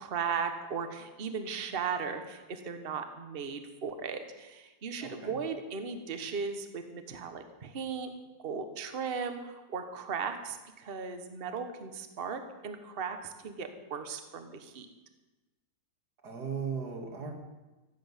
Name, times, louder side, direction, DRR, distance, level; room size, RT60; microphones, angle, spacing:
voice 1, 0.0-8.1 8.4-14.9, right 6 dB, 35° right, 8 dB, 1.2 m, -37 dB
voice 2, 5.0-5.4 16.2-17.3, right 6 dB, 60° right, 3 dB, 2.5 m, -37 dB
15.5 x 7.8 x 8.0 m, 1.1 s
omnidirectional pair, 2.0 m